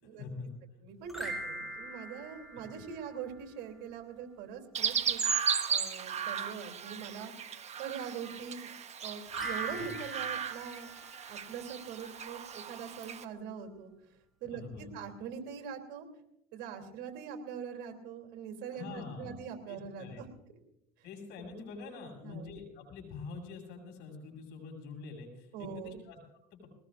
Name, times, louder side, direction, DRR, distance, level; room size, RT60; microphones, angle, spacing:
voice 1, 0.0-0.5 9.7-9.9 14.4-14.8 18.7-19.4 19.7-20.2 21.0-26.7, left 4 dB, 65° left, 1 dB, 7.2 m, -45 dB
voice 2, 0.8-5.3 5.7-7.3 7.8-8.7 9.0-10.9 11.3-13.9 14.4-16.1 16.5-20.3 22.2-22.5 25.5-26.0, right 7 dB, 65° right, 2 dB, 3.2 m, -43 dB
sound 1, 1.0-3.5 9.3-11.9, right 1 dB, ahead, 5.4 m, -43 dB
Chirp tweet, 4.7-13.2, right 7 dB, 35° right, 1.2 m, -35 dB
21.5 x 19.0 x 2.6 m, 0.83 s
supercardioid pair, 90°, 19 cm